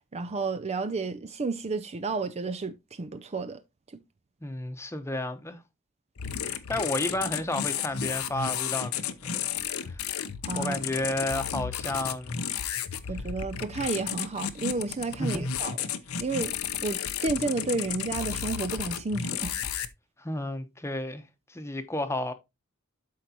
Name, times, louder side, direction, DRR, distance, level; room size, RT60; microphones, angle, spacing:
voice 1, 0.1-3.6 3.9-4.0 10.4-10.8 13.1-15.9 16.2-16.5 16.8-19.6, right 3 dB, 30° right, 0.5 m, -31 dB
voice 2, 4.4-5.6 6.4-9.5 9.9-10.0 10.5-12.4 15.2-15.4 20.2-21.2 21.5-22.3, left 1 dB, 15° left, 0.9 m, -32 dB
sound 1, 6.2-19.9, left 8 dB, 90° left, 0.8 m, -33 dB
12.0 x 4.5 x 2.9 m
head